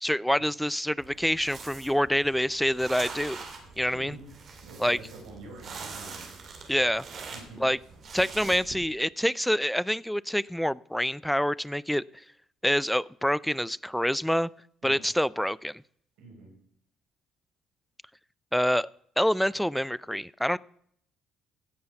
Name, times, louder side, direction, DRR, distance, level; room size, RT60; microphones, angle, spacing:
voice 1, 0.0-3.4 3.8-4.2 4.8-5.0 6.7-7.1 7.6-7.8 8.1-12.0 12.6-14.5 14.8-15.8 18.5-18.9 19.2-20.6, equal, ahead, 22 dB, 0.4 m, -26 dB
sound 1, 1.0-8.7, right 4 dB, 55° right, 2.7 m, -44 dB
voice 2, 3.9-4.3 4.6-6.3 7.3-7.6 14.8-15.1 16.2-16.5, right 3 dB, 85° right, 0 dB, 4.4 m, -46 dB
16.0 x 5.6 x 5.8 m, 0.66 s
supercardioid pair, 70°, 0 cm